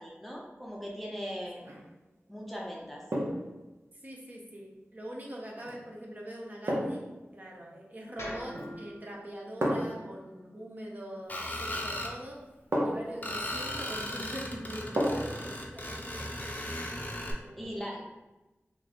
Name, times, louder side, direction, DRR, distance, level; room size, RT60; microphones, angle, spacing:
voice 1, 0.0-1.6 2.3-3.0 17.6-18.0, equal, ahead, -3 dB, 0.7 m, -39 dB
sound 1, 1.5-1.9 3.1-3.5 5.6-5.8 6.7-7.1 8.5-8.9 9.6-10.1 11.7-11.8 12.7-13.2 15.0-15.4 15.8-15.9, equal, 75° right, 0.7 m, -31 dB
voice 2, 4.0-7.0 7.3-12.4 12.8-16.2 16.6-16.8 17.4-17.8, equal, 40° right, -2 dB, 0.8 m, -43 dB
sound 2, 8.2-12.3, left 1 dB, 85° left, 0.8 m, -47 dB
Screech, 11.3-12.1 13.2-17.3, left 1 dB, 35° left, 0.7 m, -37 dB
3.0 x 2.5 x 4.1 m, 1.1 s
wide cardioid pair, 50°, 5 cm